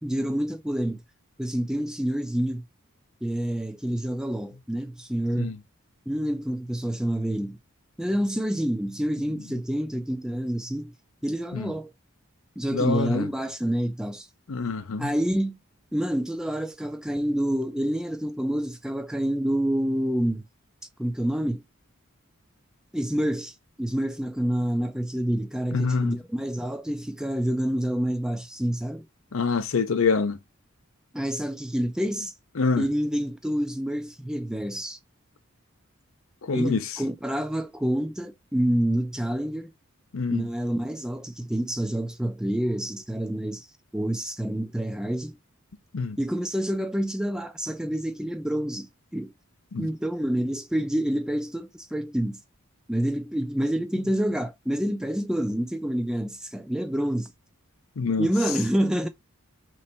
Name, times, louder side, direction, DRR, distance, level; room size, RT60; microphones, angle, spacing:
voice 1, 0.0-1.0 1.4-2.6 3.2-5.5 6.1-7.6 8.0-10.9 11.2-11.9 12.6-14.3 15.0-15.6 15.9-20.4 21.0-21.6 22.9-29.1 31.1-32.3 32.8-35.0 36.5-39.7 40.3-43.7 43.9-45.4 46.2-49.3 49.8-52.4 52.9-57.3 58.2-59.1, equal, 5° right, 0.4 m, -28 dB
voice 2, 12.7-13.3 14.5-15.1 25.7-26.2 29.3-30.4 32.6-32.9 36.4-36.8 40.1-40.5 45.9-46.2 49.7-49.9 58.0-58.3, left 4 dB, 70° left, 0.6 m, -26 dB
3.3 x 3.1 x 4.0 m
head